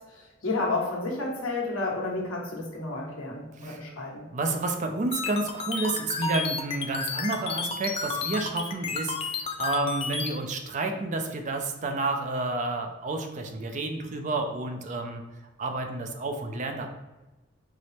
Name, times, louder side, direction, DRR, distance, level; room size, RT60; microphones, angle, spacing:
voice 1, 0.4-4.3, left 3 dB, 90° left, -2 dB, 1.1 m, -31 dB
voice 2, 4.3-15.2 15.6-16.9, right 2 dB, 35° right, 5 dB, 0.4 m, -30 dB
sound 1, 5.1-10.3, left 4 dB, 30° left, 0.3 m, -31 dB
4.7 x 2.0 x 4.1 m, 1.1 s
head